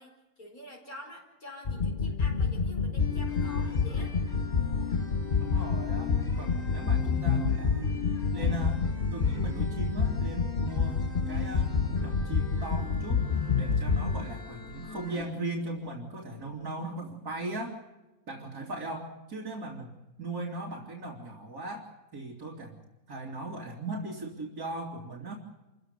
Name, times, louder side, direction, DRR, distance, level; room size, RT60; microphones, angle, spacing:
voice 1, 0.0-4.2, left 1 dB, 70° left, 1 dB, 5.3 m, -47 dB
sound 1, 1.7-14.3, left 5 dB, 40° left, 1.1 m, -28 dB
sound 2, 3.0-15.2, left 6 dB, 15° left, 3.0 m, -40 dB
voice 2, 5.4-7.9 8.3-13.2 13.6-17.8 18.3-19.9 20.2-22.8 23.1-25.3, right 2 dB, 85° right, -2 dB, 3.4 m, -38 dB
27.0 x 15.5 x 8.2 m, 1.0 s
omnidirectional pair, 1.6 m